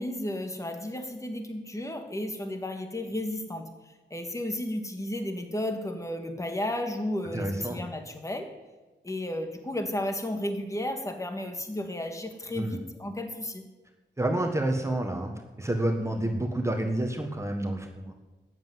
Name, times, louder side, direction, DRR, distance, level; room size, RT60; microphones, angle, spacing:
voice 1, 0.0-8.5 9.0-13.6, left 1 dB, 15° left, 5 dB, 1.7 m, -33 dB
voice 2, 7.3-7.8 12.5-12.8 14.2-18.1, right 1 dB, 15° right, 3 dB, 1.5 m, -29 dB
13.5 x 8.0 x 9.4 m, 1.2 s
wide cardioid pair, 110°, 19 cm